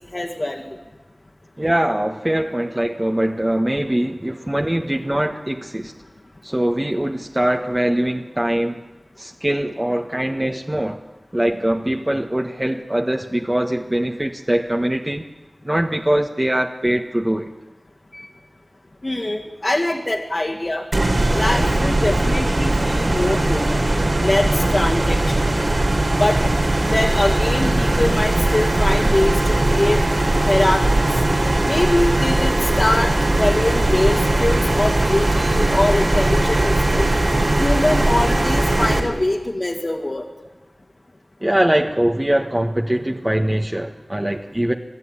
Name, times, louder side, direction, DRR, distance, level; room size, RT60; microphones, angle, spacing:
voice 1, 0.1-0.6 18.1-18.3 19.0-20.8 21.3-23.8 24.2-25.5 26.2-26.4 26.9-30.0 30.4-31.2 31.7-33.1 33.4-37.1 37.6-40.2, left 1 dB, 50° left, -1 dB, 2.2 m, -23 dB
voice 2, 1.6-5.9 6.4-8.8 9.2-11.0 11.3-15.2 15.6-17.5 41.4-44.7, right 1 dB, 25° right, 2 dB, 1.3 m, -22 dB
sound 1, 20.9-39.0, right 1 dB, 70° right, 3.8 m, -19 dB
26.0 x 16.0 x 9.9 m, 1.2 s
wide cardioid pair, 60°, 0 cm